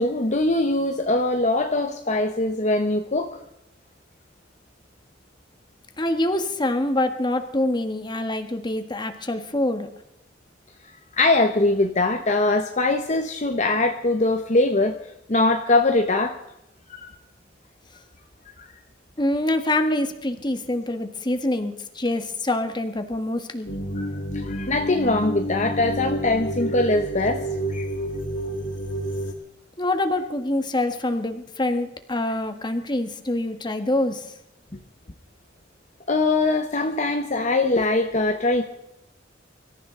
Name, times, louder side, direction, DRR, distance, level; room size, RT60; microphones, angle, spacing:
voice 1, 0.0-3.4 11.2-15.0 15.3-16.4 16.9-17.1 18.6-18.7 24.0-24.1 24.3-27.4 27.7-27.9 36.1-38.6, left 2 dB, 40° left, 4 dB, 1.1 m, -22 dB
voice 2, 6.0-9.9 19.2-23.7 29.8-34.3, left 1 dB, 25° left, 7 dB, 1.5 m, -25 dB
sound 1, 23.7-29.3, right 1 dB, 90° left, 2.6 m, -29 dB
24.5 x 14.0 x 3.9 m, 0.82 s
head